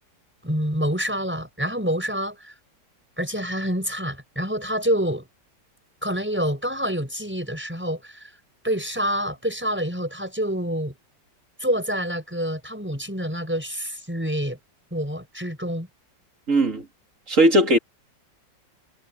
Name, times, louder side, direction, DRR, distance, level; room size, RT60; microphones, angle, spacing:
voice 1, 0.4-2.5 3.2-5.3 6.0-8.3 8.6-10.9 11.6-14.6 14.9-15.9, equal, 5° right, 6.3 m, -27 dB
voice 2, 16.5-16.8 17.3-17.8, right 1 dB, 45° right, 3.2 m, -18 dB
omnidirectional pair, 1.9 m